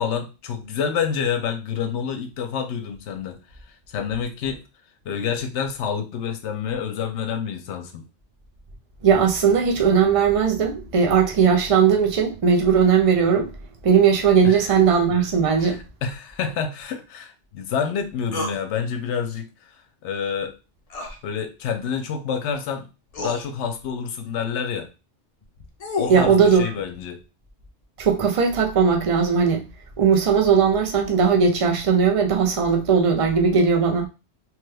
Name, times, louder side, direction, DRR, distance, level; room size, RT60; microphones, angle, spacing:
voice 1, 0.0-3.4 3.9-4.6 5.0-8.0 14.4-14.6 15.6-19.7 20.0-20.6 21.2-22.9 23.2-24.9 26.0-27.2, left 7 dB, 75° left, 0.9 m, -28 dB
voice 2, 9.0-13.5 13.8-15.8 26.1-26.7 28.0-29.6 30.0-34.1, right 6 dB, 40° right, 0.5 m, -18 dB
sound 1, 18.3-18.6 20.9-21.2 22.5-22.6 23.1-23.4 25.4-26.3, left 3 dB, 50° left, 0.4 m, -29 dB
3.2 x 2.2 x 3.3 m
omnidirectional pair, 1.2 m